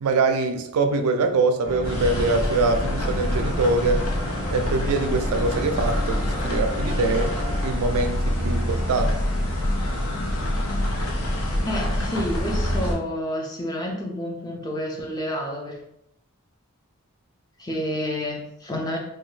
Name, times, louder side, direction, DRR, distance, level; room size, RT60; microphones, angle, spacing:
voice 1, 0.0-4.0 4.5-7.3 7.6-9.2, right 3 dB, 90° right, 7 dB, 0.4 m, -23 dB
sound 1, 1.6-7.7, left 1 dB, 45° left, 1.2 m, -34 dB
sound 2, 1.8-12.9, left 1 dB, 80° left, 0.7 m, -26 dB
voice 2, 11.6-15.8 17.6-19.0, equal, 20° left, 0 dB, 0.5 m, -29 dB
2.7 x 2.2 x 3.2 m, 0.81 s
head